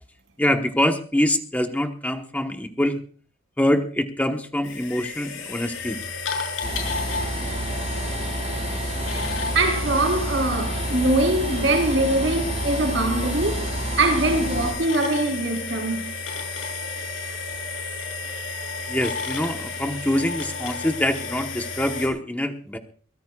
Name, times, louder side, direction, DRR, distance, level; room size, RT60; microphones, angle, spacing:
voice 1, 0.4-3.0 3.6-6.0 18.9-22.8, left 1 dB, 10° left, 1.1 m, -24 dB
sound 1, 4.6-22.1, left 4 dB, 75° left, 6.4 m, -32 dB
sound 2, 6.6-14.7, right 1 dB, 35° right, 5.0 m, -29 dB
voice 2, 9.5-13.7 14.0-16.1, right 2 dB, 70° right, 5.0 m, -23 dB
23.5 x 18.0 x 2.4 m
head